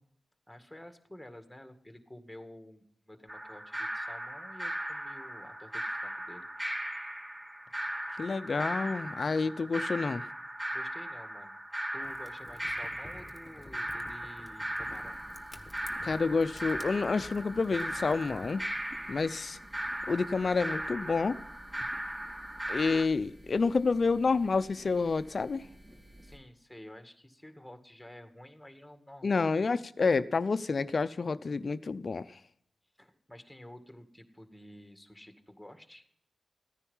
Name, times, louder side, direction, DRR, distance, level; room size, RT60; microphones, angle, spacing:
voice 1, 0.5-6.5 10.7-11.6 11.9-15.2 26.2-29.6 33.0-36.1, left 1 dB, 5° left, 2.1 m, -51 dB
sound 1, 3.3-23.1, right 1 dB, 15° right, 1.1 m, -38 dB
voice 2, 8.2-10.2 16.0-18.6 19.1-19.6 20.1-21.4 22.7-25.7 29.2-32.4, left 4 dB, 55° left, 0.6 m, -29 dB
Fire, 12.0-18.5, left 1 dB, 20° left, 1.4 m, -52 dB
sound 2, 14.8-26.4, equal, 40° right, 4.9 m, -54 dB
14.5 x 9.9 x 5.6 m
supercardioid pair, 40°, 0 cm